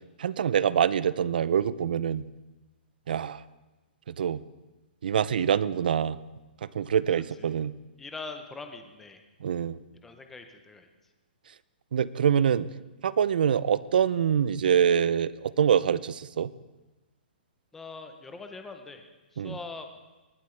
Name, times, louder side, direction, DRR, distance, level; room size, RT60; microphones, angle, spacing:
voice 1, 0.2-2.2 3.1-3.4 4.1-4.4 5.0-6.2 6.6-7.7 9.4-9.8 11.9-12.7 13.0-16.5 19.4-19.6, right 8 dB, 60° right, 19 dB, 0.4 m, -25 dB
voice 2, 8.0-9.2 10.0-10.9 17.7-19.9, left 3 dB, 5° left, 6 dB, 0.6 m, -42 dB
20.0 x 11.5 x 3.2 m, 1.1 s
hypercardioid pair, 175°, 6 cm